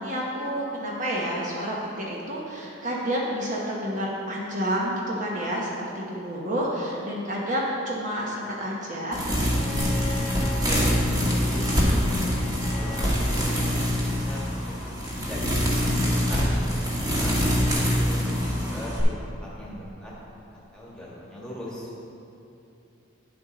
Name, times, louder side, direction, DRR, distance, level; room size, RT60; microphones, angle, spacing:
voice 1, 0.0-9.2, equal, 40° right, -4 dB, 1.0 m, -29 dB
sound 1, 9.1-19.0, equal, 20° right, 1.3 m, -24 dB
Bowed string instrument, 9.5-14.5 16.0-16.1, left 3 dB, 30° left, 1.1 m, -41 dB
voice 2, 10.4-12.3 12.7-13.7 14.0-15.4 15.9-16.5 17.0-20.1 20.5-21.9, left 1 dB, 5° left, -6 dB, 1.5 m, -40 dB
8.9 x 7.0 x 3.9 m, 2.9 s
head